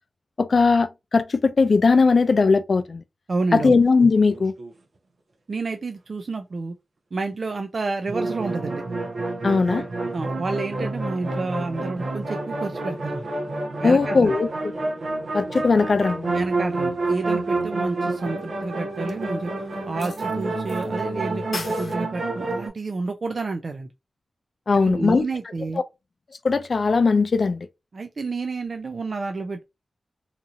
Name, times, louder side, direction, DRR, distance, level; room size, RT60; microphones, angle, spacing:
voice 1, 0.4-3.0 3.5-4.5 9.4-9.8 13.8-14.7 15.3-16.3 24.7-25.2 26.4-27.7, left 4 dB, 65° left, 0.4 m, -19 dB
voice 2, 3.3-3.8 5.5-6.7 7.1-8.8 10.1-13.3 13.8-14.4 16.3-23.9 24.8-25.8 27.9-29.6, right 3 dB, 65° right, 0.3 m, -30 dB
sound 1, 4.1-4.7 8.1-22.7, right 2 dB, 80° right, 0.8 m, -28 dB
sound 2, 19.1-19.2 20.0-20.8 21.1-21.2 21.5-21.9, left 3 dB, 80° left, 0.7 m, -34 dB
2.9 x 2.7 x 2.5 m
cardioid pair, 55°, 0 cm